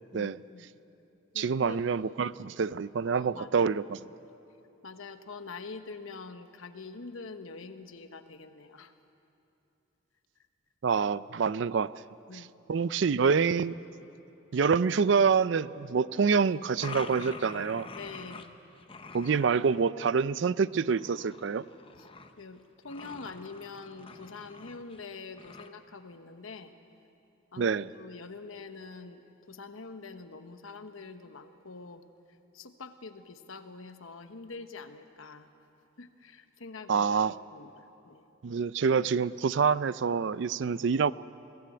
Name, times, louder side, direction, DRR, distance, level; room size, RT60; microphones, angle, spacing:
voice 1, 0.1-0.7 1.3-1.8 3.1-3.7 4.8-8.9 12.3-12.5 17.9-18.5 21.9-22.1 22.4-26.7 27.5-29.2 29.5-32.0 32.5-35.5 36.0-38.2, left 4 dB, 90° left, 9 dB, 1.1 m, -45 dB
voice 2, 1.4-4.1 10.8-11.9 12.7-13.8 14.5-17.9 19.1-21.7 27.6-27.9 36.9-37.3 38.4-41.1, right 5 dB, 65° right, 17 dB, 0.4 m, -26 dB
sound 1, 16.5-18.5 18.7-19.8 20.8-22.4 22.8-25.0 25.4-25.7, left 4 dB, 25° left, 0.7 m, -46 dB
21.0 x 16.0 x 8.6 m, 2.8 s
head